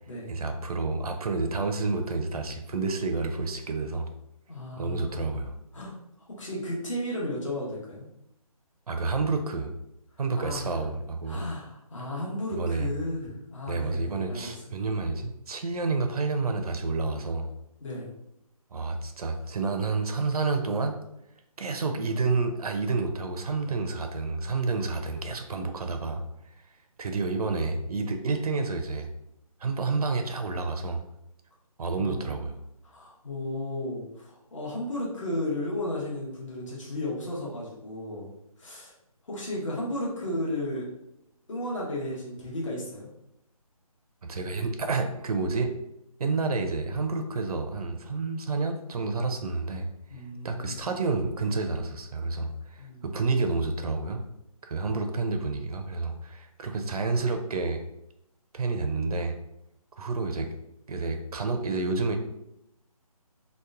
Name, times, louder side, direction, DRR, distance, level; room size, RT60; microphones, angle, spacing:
voice 1, 0.3-4.1 4.8-5.6 8.9-9.7 10.2-11.4 12.6-12.9 13.7-17.5 18.7-21.0 21.6-26.2 27.0-29.1 29.6-31.0 31.8-32.6 44.2-45.7 46.2-49.9 50.4-54.2 54.6-57.8 58.5-59.4 60.0-60.5 60.9-62.2, right 3 dB, 80° right, 6 dB, 0.5 m, -29 dB
voice 2, 4.5-5.2 5.7-5.9 6.4-8.1 10.4-10.8 11.3-14.6 17.8-18.1 32.0-32.3 32.8-38.3 38.6-38.9 39.3-40.9 41.5-43.1 50.1-50.9 52.8-53.0, left 1 dB, 55° left, -4 dB, 1.0 m, -34 dB
2.9 x 2.0 x 2.4 m, 0.83 s
hypercardioid pair, 170°, 19 cm